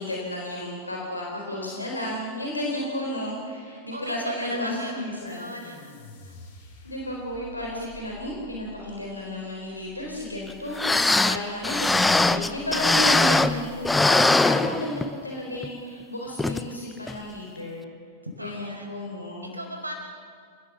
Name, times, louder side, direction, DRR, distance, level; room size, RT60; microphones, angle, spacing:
voice 1, 0.0-5.5 6.8-17.9 18.4-19.5, left 1 dB, 80° left, -1 dB, 4.1 m, -33 dB
voice 2, 2.7-3.3 3.9-5.9 6.2-6.3 11.3-12.1 18.4-18.9 19.4-19.9, right 1 dB, 80° right, 2 dB, 5.1 m, -39 dB
sound 1, 5.3-14.1, left 3 dB, 55° left, 5.5 m, -49 dB
sound 2, 10.5-10.6 10.8-13.6 13.8-15.2 15.6-15.7 16.4-16.6 17.1-17.2, left 2 dB, 5° left, 0.8 m, -21 dB
29.5 x 18.5 x 7.0 m, 2.2 s
figure-of-eight pair, 90°, 0 cm